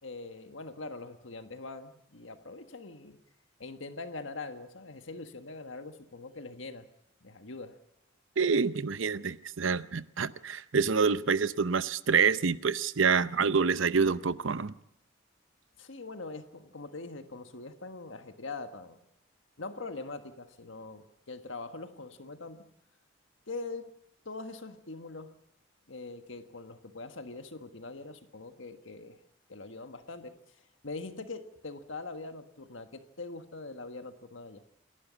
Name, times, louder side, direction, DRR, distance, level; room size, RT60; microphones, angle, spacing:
voice 1, 0.0-3.2 3.6-6.9 7.2-7.8 15.8-19.0 19.6-22.7 23.5-23.9 24.2-25.3 25.9-29.2 29.5-30.4 30.8-34.6, left 3 dB, 70° left, 8 dB, 1.6 m, -42 dB
voice 2, 8.4-14.7, right 5 dB, 75° right, 15 dB, 0.8 m, -27 dB
28.0 x 11.5 x 8.4 m, 0.80 s
head